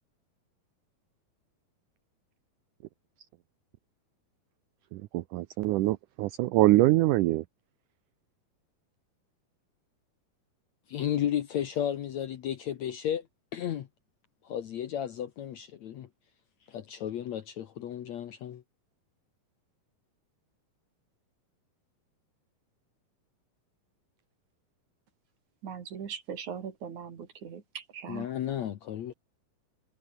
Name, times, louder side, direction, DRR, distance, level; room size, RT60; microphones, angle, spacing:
voice 1, 4.9-7.4, right 18 dB, 80° right, 1.8 m, -24 dB
voice 2, 10.9-13.3 13.5-13.9 14.4-16.1 16.7-18.6 28.1-29.1, left 10 dB, 65° left, 2.0 m, -33 dB
voice 3, 25.6-28.3, right 7 dB, 55° right, 3.8 m, -40 dB
omnidirectional pair, 4.4 m